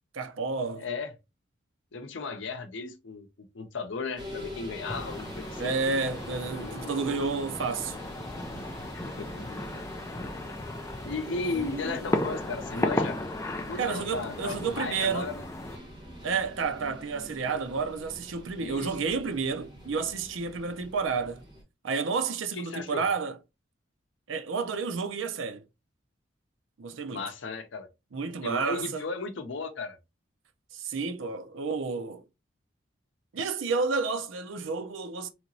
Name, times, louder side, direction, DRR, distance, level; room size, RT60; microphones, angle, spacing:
voice 1, 0.1-0.9 5.6-8.0 13.8-15.3 16.2-21.4 21.8-23.4 24.3-25.6 26.8-27.3 28.1-29.0 30.7-32.2 33.3-35.3, right 4 dB, 90° right, 0.5 m, -30 dB
voice 2, 0.8-1.1 1.9-5.7 8.9-9.5 11.0-13.2 13.7-15.4 18.5-18.9 22.5-23.0 27.1-27.9 28.4-30.0, left 4 dB, 75° left, 0.6 m, -35 dB
sound 1, 4.2-21.6, equal, 25° right, 1.2 m, -43 dB
sound 2, 4.9-15.8, left 2 dB, 15° left, 0.3 m, -35 dB
3.2 x 2.9 x 2.6 m
head